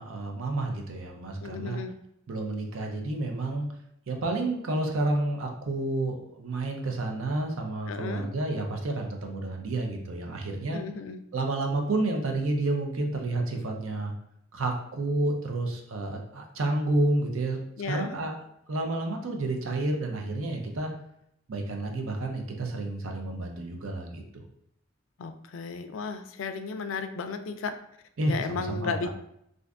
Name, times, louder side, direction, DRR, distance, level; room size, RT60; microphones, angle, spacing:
voice 1, 0.0-1.8 2.3-3.7 4.1-10.8 11.3-14.1 14.5-18.4 18.7-20.9 21.5-24.4 28.2-29.1, right 2 dB, 75° right, 3 dB, 0.6 m, -30 dB
voice 2, 1.4-2.0 7.9-8.3 10.7-11.2 17.8-18.2 25.2-27.8 28.3-29.1, left 5 dB, 70° left, 8 dB, 0.3 m, -34 dB
2.5 x 2.5 x 3.4 m, 0.75 s
head